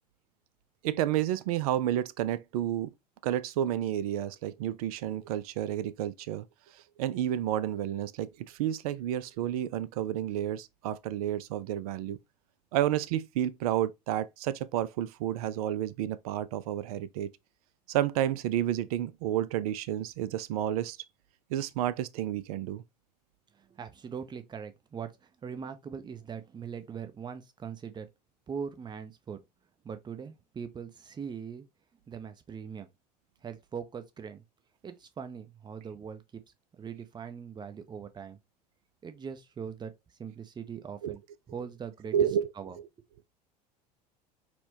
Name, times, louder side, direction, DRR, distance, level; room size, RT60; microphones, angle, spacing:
voice 1, 0.8-2.9 3.2-6.4 6.7-12.2 12.7-17.3 17.9-21.0 21.5-22.8 41.0-41.2 42.1-42.5, right 11 dB, 60° right, 0.4 m, -30 dB
voice 2, 23.6-28.1 28.5-29.4 29.8-31.7 32.1-32.9 33.4-34.4 34.8-36.4 36.8-38.4 39.0-39.9 40.2-41.2 41.5-42.1 42.6-42.8, right 7 dB, 20° right, 0.6 m, -41 dB
4.2 x 2.2 x 2.7 m
figure-of-eight pair, 75°, 21 cm